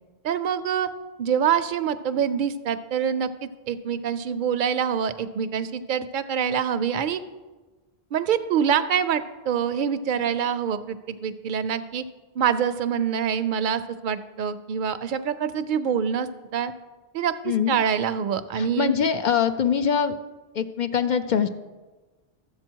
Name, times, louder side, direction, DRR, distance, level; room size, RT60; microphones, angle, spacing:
voice 1, 0.2-0.9 1.2-7.2 8.1-12.0 12.4-16.7 17.1-18.9, right 8 dB, 60° right, 11 dB, 0.7 m, -25 dB
voice 2, 17.5-17.8 18.6-20.1 20.5-21.5, left 7 dB, 55° left, 9 dB, 0.6 m, -23 dB
12.0 x 7.9 x 4.5 m, 1.2 s
omnidirectional pair, 1.0 m